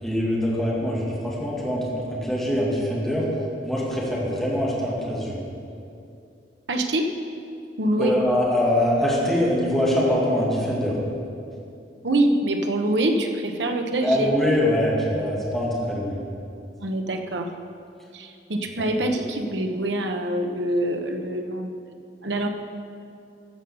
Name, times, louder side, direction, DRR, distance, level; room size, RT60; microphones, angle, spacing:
voice 1, 0.0-3.3 3.6-5.4 8.0-11.0 14.0-16.2, left 1 dB, ahead, -6 dB, 2.0 m, -23 dB
voice 2, 6.7-7.1 7.8-8.1 12.0-14.3 16.8-17.5 18.1-21.7 22.2-22.5, right 1 dB, 90° right, 4 dB, 1.0 m, -25 dB
14.5 x 5.5 x 7.1 m, 2.5 s
head